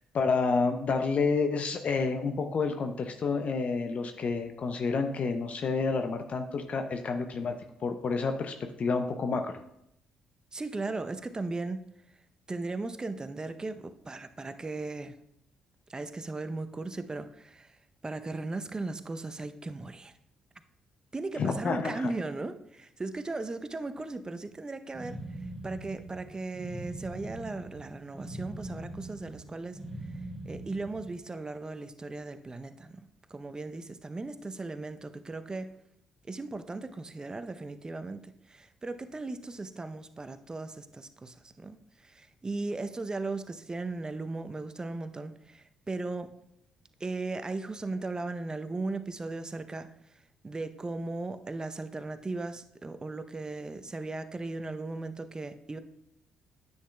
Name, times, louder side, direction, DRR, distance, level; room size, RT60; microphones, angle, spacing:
voice 1, 0.1-9.6 21.4-22.1, left 4 dB, 50° left, 7 dB, 0.6 m, -29 dB
voice 2, 10.5-11.8 12.5-15.2 15.9-17.8 18.0-20.1 21.1-25.2 25.6-29.8 30.4-33.0 33.3-35.7 36.3-41.8 42.0-46.3 47.0-49.9 50.4-55.8, right 3 dB, 25° right, 10 dB, 0.7 m, -37 dB
sound 1, 24.9-31.2, right 1 dB, ahead, 2.3 m, -42 dB
10.0 x 8.0 x 2.3 m, 0.78 s
hypercardioid pair, 45°, 3 cm